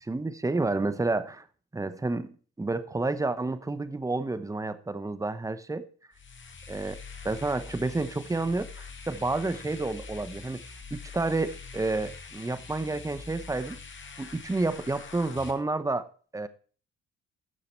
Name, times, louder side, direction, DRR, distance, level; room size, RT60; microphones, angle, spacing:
voice 1, 0.0-1.4 1.7-5.9 6.7-7.0 7.2-10.6 10.9-13.8 14.2-16.1 16.3-16.5, right 3 dB, 10° right, 12 dB, 0.8 m, -30 dB
sound 1, 6.1-15.5, left 4 dB, 40° left, 1.9 m, -44 dB
12.5 x 6.7 x 4.4 m, 0.41 s
cardioid pair, 90°, 30 cm